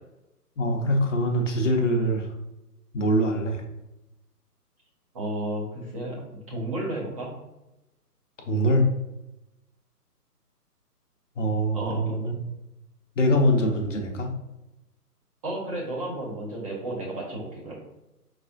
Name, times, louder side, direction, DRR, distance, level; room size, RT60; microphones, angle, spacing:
voice 1, 0.6-2.3 2.9-3.6 8.5-8.9 11.4-12.4 13.2-14.3, equal, 50° left, 2 dB, 0.8 m, -23 dB
voice 2, 5.1-7.3 11.7-12.1 15.4-17.8, right 1 dB, 20° right, -5 dB, 0.9 m, -32 dB
4.9 x 3.3 x 2.6 m, 0.95 s
figure-of-eight pair, 140°, 47 cm